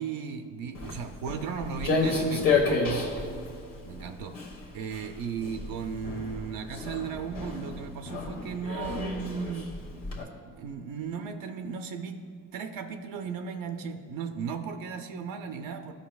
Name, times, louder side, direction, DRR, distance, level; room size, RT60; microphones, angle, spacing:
voice 1, 0.0-2.8 3.8-4.4 4.7-9.8 10.4-15.9, right 6 dB, 85° right, 6 dB, 0.5 m, -36 dB
Walk footsteps, 0.7-10.2, left 3 dB, 75° left, 1.3 m, -31 dB
13.5 x 5.4 x 2.3 m, 2.2 s
cardioid pair, 75°, 33 cm